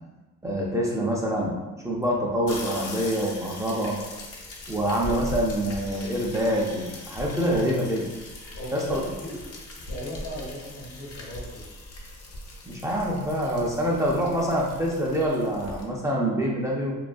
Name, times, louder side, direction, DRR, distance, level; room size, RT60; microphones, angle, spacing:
voice 1, 0.4-1.5 1.8-4.0 4.7-8.1 8.7-9.0 12.7-16.9, equal, 10° right, -4 dB, 0.4 m, -26 dB
sound 1, 2.5-15.8, left 2 dB, 55° left, 0.6 m, -40 dB
voice 2, 8.6-9.5 9.9-11.6, equal, 75° left, -5 dB, 1.0 m, -37 dB
2.3 x 2.2 x 2.5 m, 1.2 s
cardioid pair, 90°, 30 cm